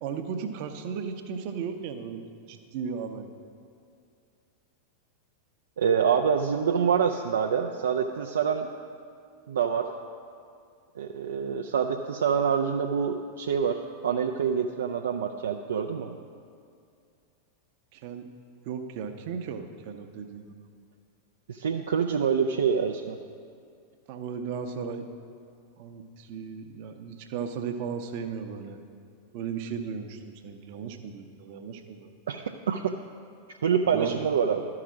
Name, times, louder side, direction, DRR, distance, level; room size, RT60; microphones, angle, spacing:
voice 1, 0.0-3.3 17.9-18.3 18.6-20.5 24.1-25.1 25.8-28.8 29.3-32.1 33.9-34.2, right 6 dB, 45° right, 7 dB, 0.7 m, -36 dB
voice 2, 5.8-8.7 9.5-9.9 11.0-16.2 21.5-23.2 32.3-32.8 33.6-34.7, right 7 dB, 65° right, 3 dB, 0.4 m, -26 dB
12.5 x 4.8 x 6.2 m, 2.4 s
figure-of-eight pair, 90°, 0 cm